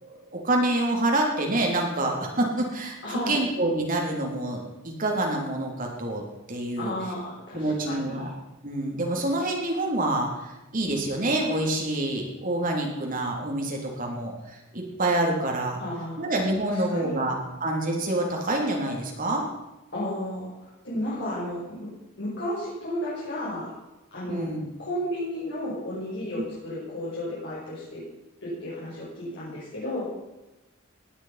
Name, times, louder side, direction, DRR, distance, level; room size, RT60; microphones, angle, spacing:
voice 1, 0.0-6.2 6.5-6.9 7.5-8.3 8.6-15.8 16.2-19.4 24.3-24.7, right 1 dB, 40° right, 0 dB, 3.6 m, -27 dB
voice 2, 3.0-3.4 6.8-8.3 15.8-16.2 16.9-17.2 19.9-21.9 22.2-23.7 24.1-24.5 24.8-28.0 28.4-30.0, left 1 dB, 55° left, -9 dB, 6.8 m, -33 dB
19.0 x 11.5 x 5.9 m, 1.0 s
head